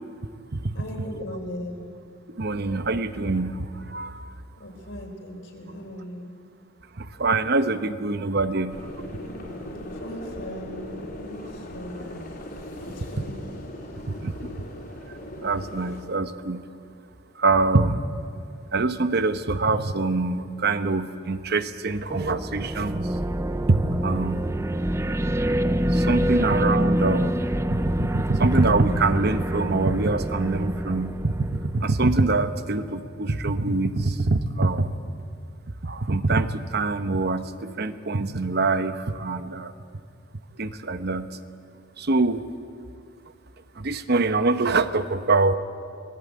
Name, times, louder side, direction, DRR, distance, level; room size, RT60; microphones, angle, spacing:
voice 1, 0.7-1.8 4.6-6.3 9.9-10.9 11.2-12.2 12.9-13.4, equal, 65° left, 2 dB, 4.0 m, -38 dB
voice 2, 2.3-4.2 7.0-8.9 12.8-13.0 14.1-14.7 15.4-16.6 17.4-18.0 18.7-23.1 23.7-24.4 25.9-27.4 27.7-34.9 35.8-39.7 40.6-41.4 42.0-42.5 43.8-45.5, right 3 dB, 55° right, 11 dB, 0.9 m, -24 dB
sound 1, 8.7-16.0, left 1 dB, 50° left, 3.6 m, -38 dB
sound 2, 22.1-32.3, right 1 dB, 15° right, 0.6 m, -26 dB
25.5 x 17.5 x 8.4 m, 2.4 s
head